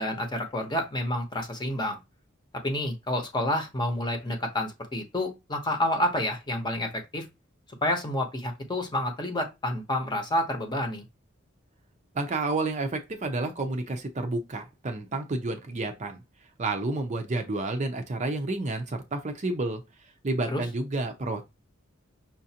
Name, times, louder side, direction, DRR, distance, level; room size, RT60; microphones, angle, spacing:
voice 1, 0.0-2.0 2.6-7.2 7.8-11.0 20.5-20.6, left 1 dB, 20° left, 0.9 m, -29 dB
voice 2, 12.1-16.2 16.6-19.8 20.2-21.4, right 2 dB, 35° right, 0.5 m, -30 dB
5.7 x 2.5 x 2.8 m
head